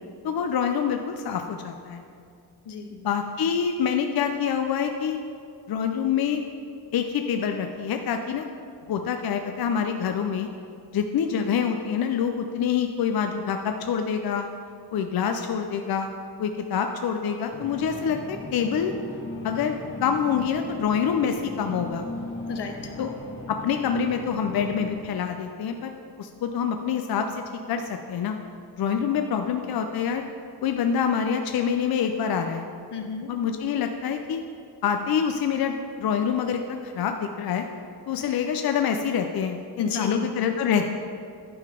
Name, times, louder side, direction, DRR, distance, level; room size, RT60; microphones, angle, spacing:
voice 1, 0.2-2.0 2.9-5.2 5.7-6.4 6.9-8.5 8.9-10.5 10.9-14.5 14.9-16.1 16.4-18.9 19.4-19.7 20.0-22.0 23.0-23.1 23.5-25.9 26.2-28.4 28.8-30.2 30.6-32.6 33.3-34.4 34.8-37.7 38.1-40.9, left 7 dB, 65° left, 5 dB, 0.5 m, -26 dB
sound 1, 17.5-24.9, left 2 dB, 30° left, 1.0 m, -37 dB
voice 2, 22.5-22.9 32.9-33.3 39.8-40.3, left 5 dB, 85° left, 4 dB, 0.9 m, -33 dB
10.5 x 3.8 x 4.9 m, 2.4 s
wide cardioid pair, 135°, 40 cm